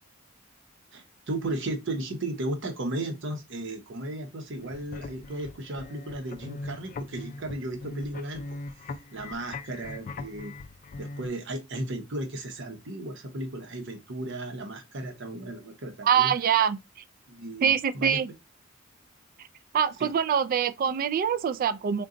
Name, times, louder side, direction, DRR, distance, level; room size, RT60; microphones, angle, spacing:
voice 1, 0.9-8.4 8.8-10.5 11.0-16.3 17.3-18.2 20.0-20.1, right 1 dB, 65° right, 0.8 m, -35 dB
sound 1, 4.6-11.3, left 2 dB, 40° left, 0.4 m, -40 dB
voice 2, 16.0-16.8 17.6-18.3 19.7-22.1, right 8 dB, 45° right, 0.3 m, -24 dB
3.8 x 2.2 x 3.7 m
head